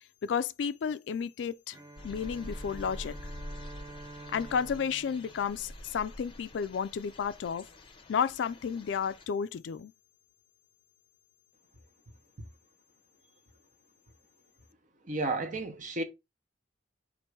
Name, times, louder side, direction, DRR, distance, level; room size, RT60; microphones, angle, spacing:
voice 1, 0.2-1.8 2.0-3.2 4.3-7.7 8.1-9.9, left 7 dB, 70° left, 0.3 m, -32 dB
Bowed string instrument, 1.7-6.4, right 2 dB, 20° right, 0.6 m, -49 dB
sound 1, 2.0-9.3, left 1 dB, 30° left, 0.6 m, -46 dB
voice 2, 15.1-16.0, right 2 dB, 45° right, 0.9 m, -32 dB
4.4 x 2.6 x 4.5 m
head